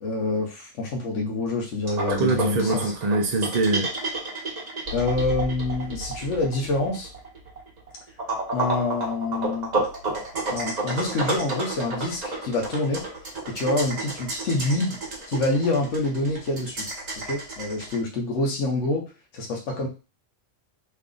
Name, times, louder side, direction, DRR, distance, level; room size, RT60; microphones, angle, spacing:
voice 1, 0.0-2.9 4.9-7.1 8.5-9.7 10.5-13.0 13.5-15.0 15.3-16.9 17.2-19.0 19.3-19.9, left 2 dB, 65° left, -1 dB, 1.1 m, -26 dB
sound 1, 1.9-18.0, right 3 dB, 35° right, 1.0 m, -30 dB
voice 2, 2.1-3.9, right 2 dB, 55° right, 1 dB, 0.4 m, -24 dB
3.3 x 2.4 x 3.7 m, 0.31 s
omnidirectional pair, 1.4 m